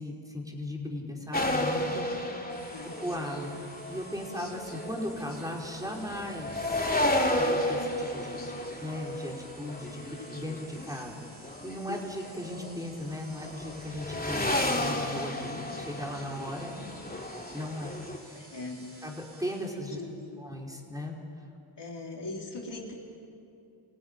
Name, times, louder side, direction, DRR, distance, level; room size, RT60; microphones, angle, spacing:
voice 1, 0.0-2.3 3.0-6.9 7.4-11.3 11.6-16.8 17.5-18.4 19.0-20.0 20.4-21.2, left 1 dB, 5° right, -1 dB, 5.0 m, -37 dB
sound 1, 1.3-11.1 11.4-13.1 13.4-18.2, left 1 dB, 20° left, 2.9 m, -33 dB
sound 2, 2.5-20.1, right 1 dB, 30° right, 7.0 m, -53 dB
voice 2, 2.6-2.9 10.1-10.3 18.3-18.9 20.0-20.4 21.8-22.9, left 2 dB, 55° left, -1 dB, 3.8 m, -40 dB
23.5 x 15.5 x 10.0 m, 2.6 s
cardioid pair, 40°, 49 cm